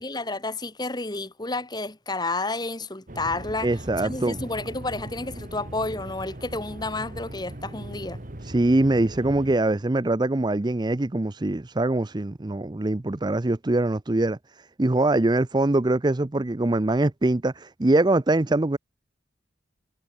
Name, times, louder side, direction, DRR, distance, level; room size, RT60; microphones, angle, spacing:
voice 1, 0.0-3.7 4.0-8.2, left 2 dB, 25° left, 2.5 m, -31 dB
sound 1, 3.1-9.6, right 1 dB, 45° right, 1.9 m, -39 dB
voice 2, 3.6-4.4 8.5-14.4 14.8-18.8, right 2 dB, 25° right, 0.6 m, -23 dB
head